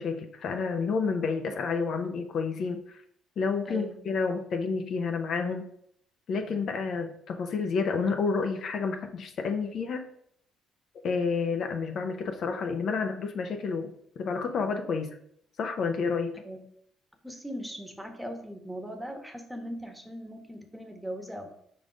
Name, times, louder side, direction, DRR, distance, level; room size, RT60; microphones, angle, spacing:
voice 1, 0.0-3.0 3.4-5.7 6.3-10.1 11.0-15.2 15.6-16.4, left 5 dB, 60° left, 5 dB, 0.7 m, -30 dB
voice 2, 17.2-21.5, equal, 5° right, 5 dB, 1.1 m, -39 dB
5.0 x 4.0 x 5.0 m, 0.69 s
supercardioid pair, 70°, 0 cm